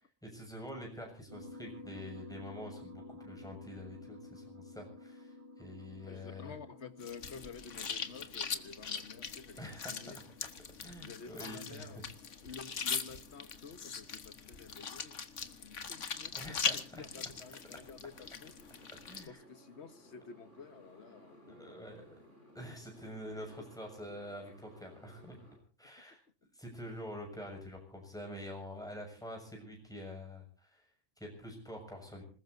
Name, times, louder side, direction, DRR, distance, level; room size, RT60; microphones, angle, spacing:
voice 1, 0.2-6.5 9.6-9.9 10.8-11.9 16.3-17.0 19.0-19.4 21.5-22.0 22.5-25.4 25.8-26.2 26.5-32.2, equal, 5° left, 1 dB, 7.0 m, -46 dB
sound 1, 1.3-13.7, left 2 dB, 25° right, 5.1 m, -53 dB
voice 2, 6.0-10.2 10.9-12.0 12.4-16.6 16.9-18.9 19.2-22.2 22.6-22.7 23.6-23.7, left 5 dB, 65° left, 11 dB, 1.6 m, -51 dB
sound 2, 7.0-19.3, left 6 dB, 80° left, 1.7 m, -41 dB
Motorcycle, 15.8-25.6, equal, 80° right, 5.9 m, -60 dB
26.5 x 20.5 x 2.7 m, 0.40 s
omnidirectional pair, 1.2 m